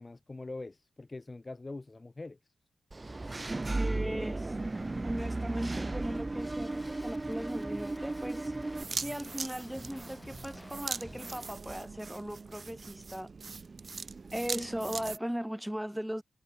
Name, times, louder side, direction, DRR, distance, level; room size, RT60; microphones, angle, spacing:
voice 1, 0.0-2.4, left 2 dB, 30° left, 0.9 m, -43 dB
Engine / Mechanisms, 2.9-8.8, right 2 dB, 30° right, 1.7 m, -35 dB
voice 2, 3.7-4.8 5.0-8.5 8.9-13.3 14.3-16.2, equal, 5° right, 1.7 m, -38 dB
Drum kit, 6.3-11.5, left 1 dB, 15° left, 2.5 m, -50 dB
sound 1, 8.7-15.2, right 4 dB, 50° right, 0.4 m, -41 dB
cardioid pair, 55°, 0 cm